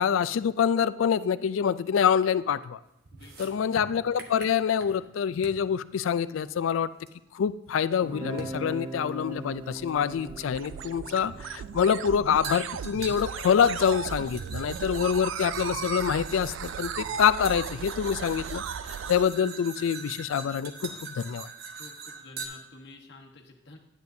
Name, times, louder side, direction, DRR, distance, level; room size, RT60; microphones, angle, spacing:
voice 1, 0.0-2.8 3.4-6.9 7.3-18.6 19.1-21.5, left 7 dB, 75° left, 16 dB, 0.3 m, -26 dB
voice 2, 3.1-3.9 21.8-23.8, left 2 dB, 55° left, 2 dB, 1.2 m, -50 dB
sound 1, 3.1-5.1 5.4-5.7 7.1-7.2 8.4-8.6 9.9-10.0 12.4-22.5, right 4 dB, 50° right, 1.0 m, -42 dB
Guitar, 8.0-13.8, right 1 dB, 25° right, 0.9 m, -41 dB
sound 2, 9.5-19.2, right 8 dB, 70° right, 0.3 m, -37 dB
10.5 x 9.3 x 2.7 m, 0.89 s
head